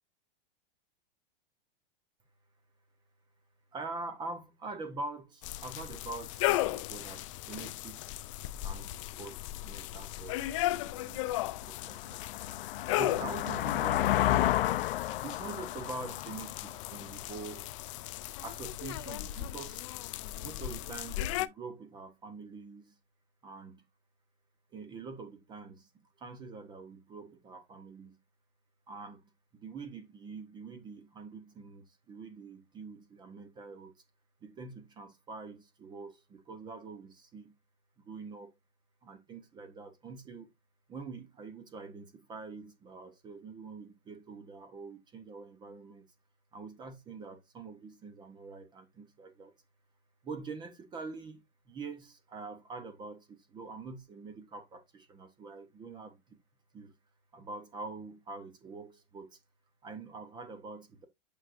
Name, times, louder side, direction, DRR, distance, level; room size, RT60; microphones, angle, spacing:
voice 1, 3.7-8.2 8.6-8.9 9.2-10.6 10.8-12.2 12.9-14.3 15.2-17.8 18.4-19.9 20.4-23.0 23.4-23.8 24.7-28.2 28.9-34.0 34.4-37.6 38.0-38.5 39.0-40.5 40.9-46.1 46.5-49.5 50.2-56.4 56.7-57.0 57.3-59.4 59.8-61.1, right 4 dB, 15° right, 0.8 m, -45 dB
sound 1, 5.4-21.5, left 15 dB, 35° left, 0.4 m, -36 dB
sound 2, 10.5-10.6 11.1-17.7, left 13 dB, 70° left, 0.7 m, -32 dB
8.6 x 6.4 x 2.5 m
supercardioid pair, 160°, 29 cm